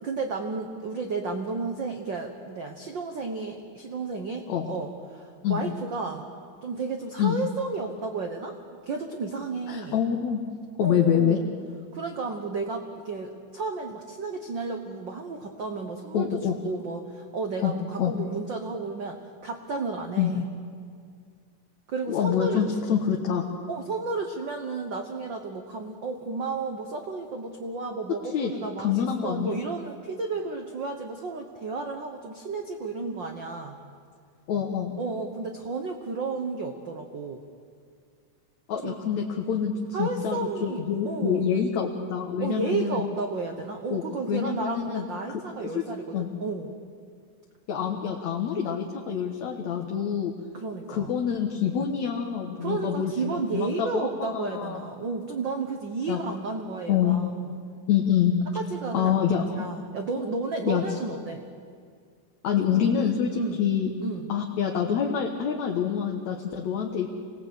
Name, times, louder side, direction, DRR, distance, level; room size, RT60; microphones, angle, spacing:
voice 1, 0.0-6.3 6.6-10.0 10.8-11.4 11.9-20.4 21.9-22.6 23.7-28.9 29.2-33.8 35.0-37.4 38.8-38.9 39.9-41.5 42.4-46.7 50.5-51.2 52.6-57.3 58.5-59.1 59.5-61.4 63.3-63.6 64.0-64.3, right 3 dB, 65° right, 4 dB, 1.1 m, -32 dB
voice 2, 9.7-10.4 10.8-11.4 16.1-16.6 17.6-17.7 18.0-18.1 20.2-20.3 22.1-23.5 28.2-28.5 28.8-29.6 33.0-33.2 34.5-35.0 38.7-43.1 43.9-44.0 44.3-45.8 46.1-46.3 47.7-50.3 50.9-54.9 56.1-56.2 56.9-57.3 57.9-58.5 58.9-59.7 60.2-60.3 60.6-60.8 62.4-63.9 64.3-67.1, left 8 dB, 60° left, 1 dB, 2.4 m, -26 dB
26.5 x 18.5 x 8.3 m, 2.2 s
omnidirectional pair, 3.9 m